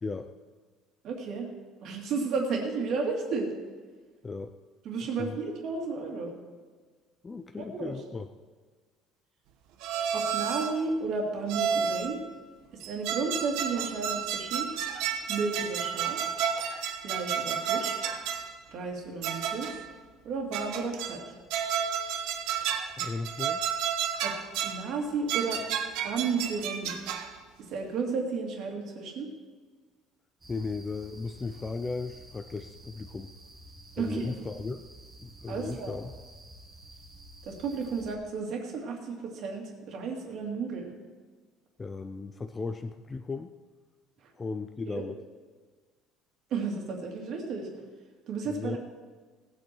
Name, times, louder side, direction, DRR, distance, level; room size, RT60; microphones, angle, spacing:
voice 1, 1.0-1.5 1.8-3.5 4.8-6.3 7.6-8.0 10.1-12.2 12.8-14.7 15.3-16.2 17.0-18.0 18.7-19.7 20.2-21.2 24.2-24.3 24.6-25.6 26.0-26.9 27.7-29.3 34.0-34.3 35.5-36.0 37.5-40.9 44.9-45.0 46.5-47.7 48.3-48.8, right 4 dB, 45° right, 0 dB, 2.5 m, -32 dB
voice 2, 4.2-4.5 5.2-5.4 7.2-8.3 22.9-23.6 30.5-33.3 34.0-34.9 35.2-36.1 41.8-43.5 44.3-45.2 48.4-48.8, left 4 dB, 15° left, 7 dB, 0.4 m, -36 dB
sound 1, 9.8-10.8 11.5-12.2 12.8-18.5 19.2-19.9 20.5-21.2 21.5-24.8 25.3-27.4, right 8 dB, 70° right, 1.1 m, -31 dB
sound 2, 30.4-38.1, right 1 dB, 15° right, 2.0 m, -50 dB
18.0 x 8.2 x 4.5 m, 1.4 s
cardioid pair, 175°, 0 cm